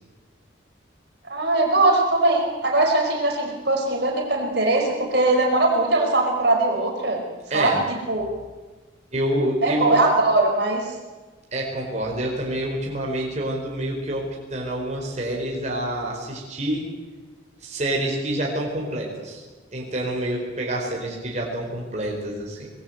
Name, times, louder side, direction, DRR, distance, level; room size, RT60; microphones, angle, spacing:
voice 1, 1.3-7.2 7.5-7.8 8.1-8.3 9.6-10.8, right 2 dB, 55° right, 1 dB, 5.1 m, -20 dB
voice 2, 7.5-7.8 9.1-10.0 11.5-16.9 17.6-19.4 19.7-22.7, right 1 dB, 35° right, -1 dB, 4.7 m, -27 dB
25.5 x 21.0 x 8.1 m, 1.2 s
head